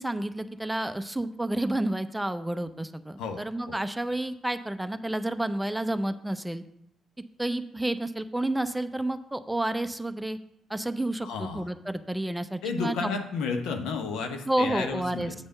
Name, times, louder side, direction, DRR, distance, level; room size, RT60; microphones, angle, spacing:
voice 1, 0.0-6.6 7.4-10.4 10.7-13.1 14.5-15.3, right 1 dB, 10° right, 11 dB, 0.5 m, -30 dB
voice 2, 11.2-11.7 12.6-15.3, left 5 dB, 80° left, 5 dB, 0.8 m, -32 dB
8.1 x 3.5 x 6.6 m, 0.75 s
hypercardioid pair, 50°, 0 cm